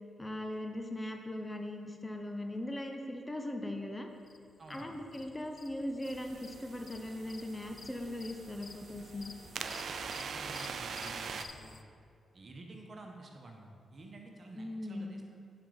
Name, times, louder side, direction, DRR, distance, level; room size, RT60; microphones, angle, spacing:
voice 1, 0.2-4.1 4.7-9.3 14.6-15.3, left 1 dB, 20° left, 3 dB, 0.9 m, -39 dB
sound 1, 4.3-11.8, left 4 dB, 50° left, 0.5 m, -53 dB
voice 2, 4.6-5.0 9.6-9.7 10.0-11.8 12.3-15.2, right 2 dB, 50° right, 2 dB, 1.2 m, -51 dB
sound 2, 6.1-11.5, right 6 dB, 65° right, 0.4 m, -43 dB
10.0 x 4.6 x 4.0 m, 2.2 s
supercardioid pair, 45°, 0 cm